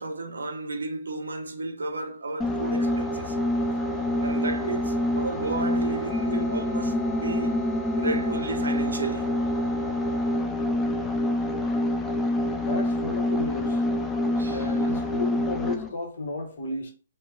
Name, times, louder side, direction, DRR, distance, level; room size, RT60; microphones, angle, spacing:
voice 1, 0.0-3.4 3.6-3.9 4.2-7.6 8.0-9.3 14.4-14.7, right 3 dB, 75° right, 0.6 m, -33 dB
sound 1, 2.4-15.9, left 1 dB, 15° left, 0.4 m, -26 dB
voice 2, 12.5-13.8 14.5-16.9, left 3 dB, 60° left, 1.0 m, -33 dB
4.3 x 2.1 x 2.4 m
figure-of-eight pair, 125°, 0 cm